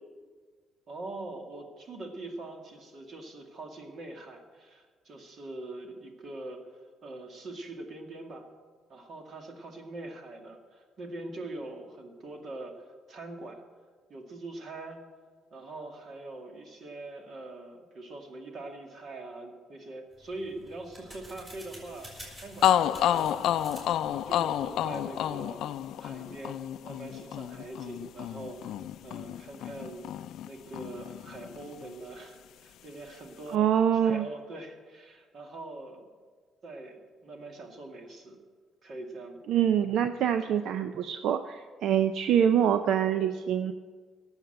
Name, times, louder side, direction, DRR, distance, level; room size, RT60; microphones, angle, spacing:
voice 1, 0.9-8.5 8.9-13.6 14.1-15.0 15.5-25.6 26.0-28.7 29.0-30.0 30.4-33.7 34.0-36.0 36.6-38.4 38.8-39.4, right 2 dB, 45° right, 3 dB, 2.1 m, -43 dB
sound 1, 20.1-25.5, equal, 20° right, 5.1 m, -50 dB
sound 2, 22.2-22.3 22.6-30.5 30.7-31.9, left 11 dB, 70° left, 0.4 m, -30 dB
voice 2, 33.5-34.3 39.5-43.7, right 9 dB, 70° right, 9 dB, 0.6 m, -25 dB
17.5 x 7.3 x 7.8 m, 1.5 s
cardioid pair, 150°, 0 cm